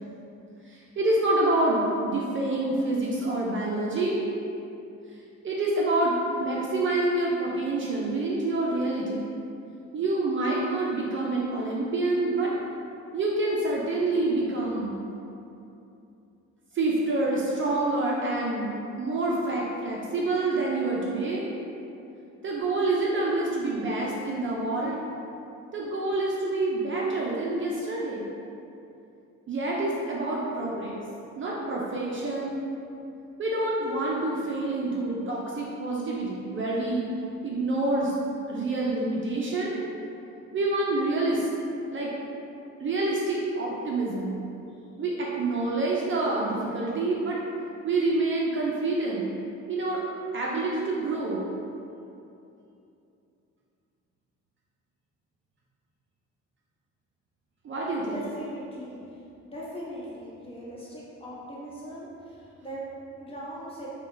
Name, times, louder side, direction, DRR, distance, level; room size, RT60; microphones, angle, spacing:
voice 1, 0.6-4.2 5.4-9.3 9.9-12.5 13.1-15.0 16.7-21.5 22.4-25.0 25.7-28.3 29.5-31.0 31.4-32.6 33.4-37.1 37.4-38.1 38.5-39.8 40.5-41.5 41.9-42.1 42.8-44.4 45.0-47.4 47.8-49.3 49.7-50.0 50.3-51.5 57.6-58.1, right 2 dB, 40° right, -4 dB, 0.5 m, -27 dB
voice 2, 58.1-58.9 59.4-62.8 63.2-63.9, equal, 20° left, -8 dB, 1.1 m, -40 dB
3.7 x 2.3 x 3.2 m, 2.7 s
cardioid pair, 90°, 30 cm